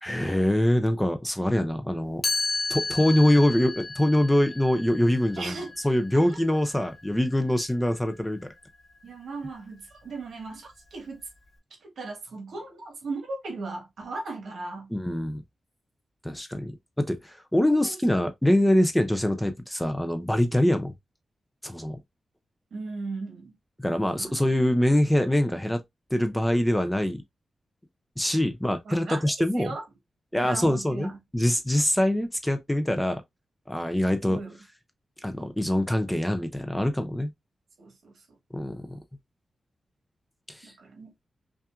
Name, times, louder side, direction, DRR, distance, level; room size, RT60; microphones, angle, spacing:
voice 1, 0.0-2.2 2.7-5.6 5.8-8.4 14.9-15.4 16.2-20.9 21.6-22.0 23.8-25.8 26.1-27.2 28.2-29.8 30.3-33.2 33.7-34.4 35.2-37.3 38.5-38.9 40.5-40.7, left 1 dB, 5° left, 0.4 m, -24 dB
Chime, 2.2-8.1, left 3 dB, 30° left, 0.8 m, -34 dB
voice 2, 5.4-5.7 6.1-6.4 9.0-11.2 11.8-14.9 17.6-18.0 18.4-18.5 22.7-23.5 24.1-24.3 28.8-29.8 30.3-31.2 34.3-34.6 37.8-38.1 40.6-41.1, right 3 dB, 70° right, 1.4 m, -37 dB
5.5 x 2.4 x 2.3 m
wide cardioid pair, 180°, 0 cm